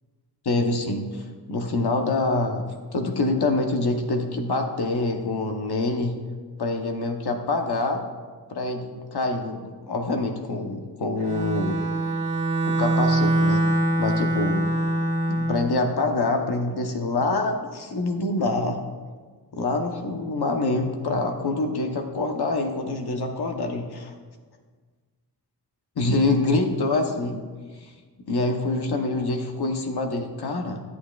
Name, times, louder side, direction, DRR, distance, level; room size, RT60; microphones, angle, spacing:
voice 1, 0.4-2.6 2.9-6.1 6.6-8.0 8.5-11.8 12.7-13.6 14.0-14.7 15.3-18.8 19.5-24.1 26.0-27.4 27.8-27.9 28.3-30.8, left 2 dB, 70° left, 4 dB, 0.9 m, -25 dB
Bowed string instrument, 11.2-15.7, right 1 dB, 85° right, 1.3 m, -23 dB
12.5 x 8.6 x 2.3 m, 1.5 s
wide cardioid pair, 140°, 41 cm